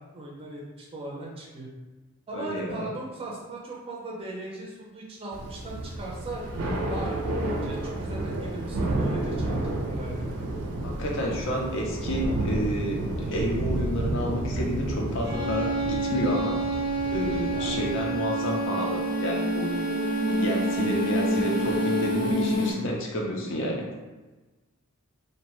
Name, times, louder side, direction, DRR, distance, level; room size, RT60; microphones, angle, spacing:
voice 1, 0.1-1.7 2.3-6.5 6.9-10.5 17.3-17.8, right 2 dB, 25° right, -3 dB, 0.5 m, -38 dB
voice 2, 2.3-2.9 10.8-16.6 17.1-19.8 20.3-23.9, equal, 55° left, -1 dB, 0.6 m, -30 dB
Thunder / Rain, 5.3-18.2, right 1 dB, 80° right, 0.4 m, -31 dB
sound 1, 15.2-22.4, right 4 dB, 85° left, 1.1 m, -30 dB
sound 2, 17.2-22.7, left 2 dB, 20° left, 0.7 m, -29 dB
2.7 x 2.1 x 3.0 m, 1.2 s
head